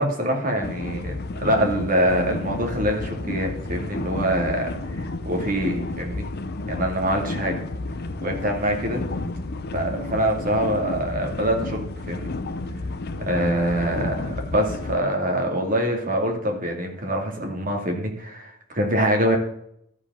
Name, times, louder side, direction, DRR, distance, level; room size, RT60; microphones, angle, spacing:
voice 1, 0.0-6.2 6.7-7.5 8.2-9.0 9.7-12.3 13.2-19.4, right 1 dB, 40° right, 2 dB, 2.4 m, -24 dB
sound 1, 0.6-15.0, left 2 dB, 50° left, 0.7 m, -31 dB
12.5 x 5.1 x 5.6 m, 0.72 s
head